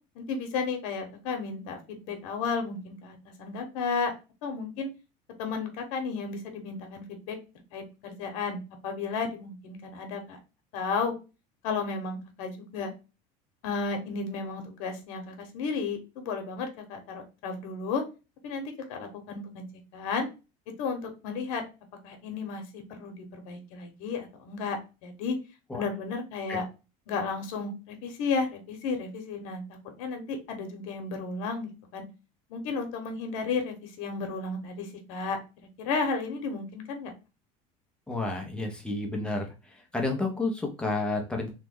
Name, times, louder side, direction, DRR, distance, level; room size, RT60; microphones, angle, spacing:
voice 1, 0.1-4.1 4.4-4.9 5.4-7.4 7.7-8.6 8.8-10.4 10.7-11.1 11.6-12.9 13.6-18.0 18.4-19.6 19.9-20.3 20.8-21.6 22.0-25.4 25.7-26.7 27.1-29.6 30.0-32.1 32.5-35.4 35.8-37.1, left 4 dB, 90° left, 5 dB, 0.9 m, -33 dB
voice 2, 38.1-41.5, left 2 dB, 5° left, 1 dB, 0.6 m, -31 dB
3.0 x 2.2 x 3.5 m, 0.29 s
cardioid pair, 160°, 17 cm